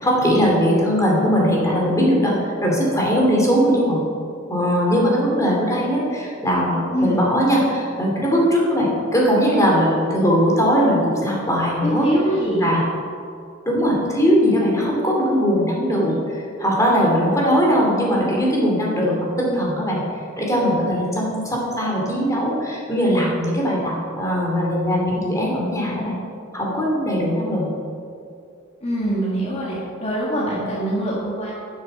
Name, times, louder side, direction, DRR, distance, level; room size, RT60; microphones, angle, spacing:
voice 1, 0.0-4.0 4.5-12.1 12.6-12.8 13.7-20.0 20.4-26.2 26.5-27.7, equal, 15° left, -3 dB, 2.5 m, -20 dB
voice 2, 6.9-7.3 11.8-12.8 28.8-31.5, right 1 dB, 35° left, -5 dB, 1.7 m, -23 dB
11.5 x 7.4 x 5.4 m, 2.4 s
head